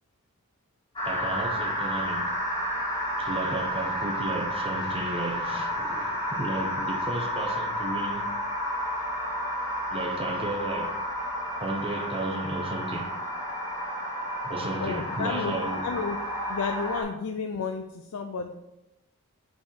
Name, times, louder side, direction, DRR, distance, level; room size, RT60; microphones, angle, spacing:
sound 1, 1.0-17.0, equal, 20° left, 1.6 m, -31 dB
voice 1, 1.1-2.3 3.2-8.3 9.9-11.0 11.6-13.2 14.4-15.9, right 2 dB, 25° right, 0.8 m, -33 dB
voice 2, 14.8-16.2 16.5-18.5, left 5 dB, 80° left, 0.4 m, -32 dB
5.2 x 4.6 x 4.4 m
head